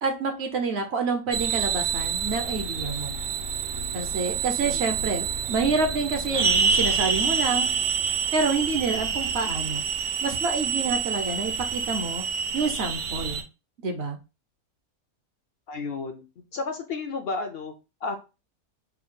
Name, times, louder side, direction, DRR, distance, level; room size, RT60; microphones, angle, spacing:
voice 1, 0.0-3.2 3.9-7.7 8.3-12.2 12.5-13.4 13.8-14.2, right 4 dB, 60° right, 6 dB, 0.8 m, -28 dB
sound 1, 1.3-13.4, right 6 dB, 75° right, 1.2 m, -27 dB
voice 2, 15.7-16.2 16.5-17.7 18.0-18.2, left 4 dB, 65° left, 6 dB, 0.6 m, -31 dB
4.4 x 2.2 x 3.7 m, 0.29 s
omnidirectional pair, 1.5 m